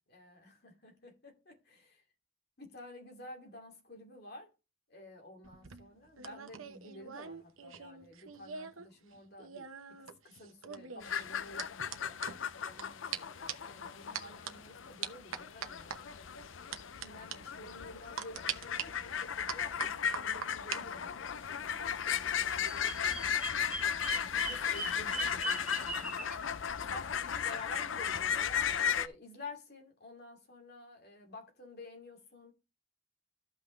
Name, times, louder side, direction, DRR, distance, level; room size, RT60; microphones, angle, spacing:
voice 1, 0.1-2.0 2.6-4.5 4.9-12.2 12.6-16.1 16.9-23.4 24.0-26.3 26.8-32.5, left 2 dB, 50° left, 2.6 m, -51 dB
sound 1, 5.4-8.9 9.1-12.8 13.1-13.2 13.5-13.7 14.1-14.5 15.0-16.0 16.7-17.1 17.3-17.4 18.2-18.8 19.5-20.8 21.1-21.5, right 8 dB, 85° right, 0.9 m, -42 dB
sound 2, 11.0-29.1, left 8 dB, 70° left, 0.6 m, -36 dB
Bird vocalization bird call bird song, 22.5-26.3, right 3 dB, 5° right, 1.2 m, -40 dB
13.5 x 5.8 x 3.2 m
head